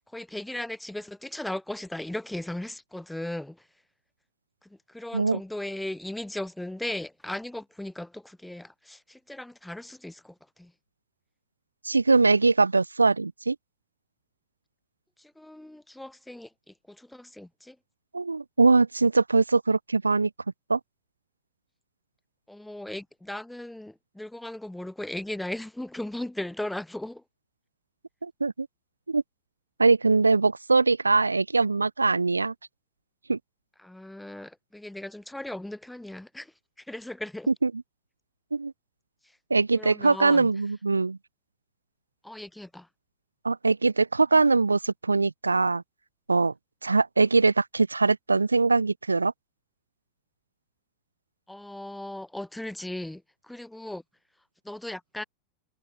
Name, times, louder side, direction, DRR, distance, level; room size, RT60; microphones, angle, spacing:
voice 1, 0.1-3.7 4.6-10.7 15.2-17.8 22.5-27.2 33.8-36.5 36.8-37.5 39.7-40.5 42.2-42.9 51.5-54.0 54.6-55.2, left 1 dB, 5° left, 4.9 m, -37 dB
voice 2, 11.8-13.6 18.1-20.3 20.7-20.8 28.2-28.7 29.1-29.2 29.8-32.5 33.3-33.4 37.6-37.7 38.5-38.7 39.5-41.2 43.4-45.8 46.3-46.5 46.8-49.3, right 3 dB, 80° right, 0.7 m, -22 dB
figure-of-eight pair, 90°, 0 cm